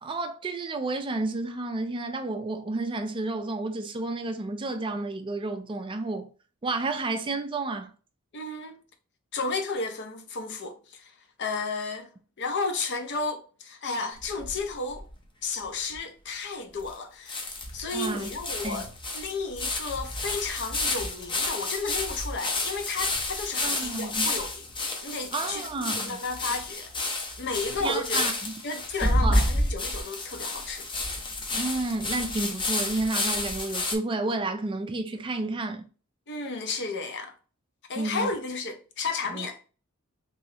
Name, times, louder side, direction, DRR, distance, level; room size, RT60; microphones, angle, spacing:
voice 1, 0.0-6.3 6.6-7.9 17.9-18.3 18.6-18.9 23.6-24.3 25.3-26.2 27.8-28.5 29.0-29.4 31.5-35.8 38.0-38.3 39.3-39.5, right 2 dB, 25° right, 0.3 m, -31 dB
voice 2, 8.3-8.8 9.3-12.1 12.4-15.1 15.4-26.9 27.4-28.3 28.6-30.9 36.3-37.3 37.9-39.6, left 3 dB, 55° left, 0.6 m, -33 dB
sound 1, 14.2-15.1 15.6-15.7 15.9-16.0 16.9-17.0 17.3-33.9, left 2 dB, 25° left, 0.7 m, -30 dB
3.0 x 2.9 x 2.7 m
head